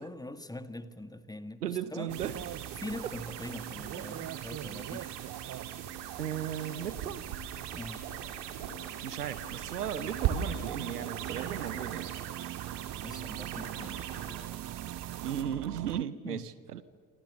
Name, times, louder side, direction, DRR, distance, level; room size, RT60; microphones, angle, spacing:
voice 1, 0.0-2.1 2.8-5.1 7.7-8.0 13.0-14.4 16.2-16.4, left 1 dB, 10° left, 11 dB, 1.8 m, -43 dB
voice 2, 1.6-2.4 6.2-7.3 9.0-12.2 15.2-16.8, right 9 dB, 85° right, 17 dB, 0.9 m, -36 dB
sound 1, 2.1-16.0, right 13 dB, 40° right, 0.7 m, -43 dB
sound 2, 2.1-15.4, right 9 dB, 60° right, 2.7 m, -40 dB
27.5 x 26.0 x 6.8 m, 2.1 s
figure-of-eight pair, 45°, 45 cm